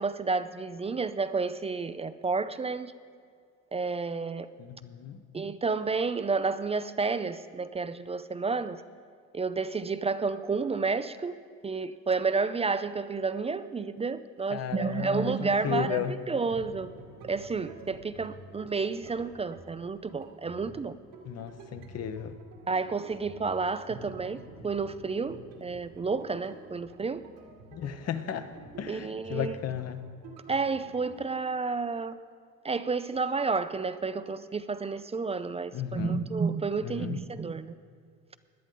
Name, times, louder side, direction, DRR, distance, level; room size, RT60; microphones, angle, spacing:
voice 1, 0.0-2.9 3.7-4.5 5.3-8.8 9.3-11.3 11.6-16.9 17.2-20.9 22.7-27.2 28.9-29.5 30.5-32.2 32.6-37.7, right 4 dB, 20° right, 13 dB, 0.4 m, -31 dB
voice 2, 4.6-5.2 14.5-16.2 21.2-22.4 27.7-28.5 28.8-30.0 35.7-36.2 36.8-37.2, left 8 dB, 50° left, 10 dB, 0.9 m, -34 dB
sound 1, 16.5-31.3, right 3 dB, 75° right, 2.2 m, -49 dB
17.0 x 10.5 x 3.8 m, 2.1 s
supercardioid pair, 80°, 32 cm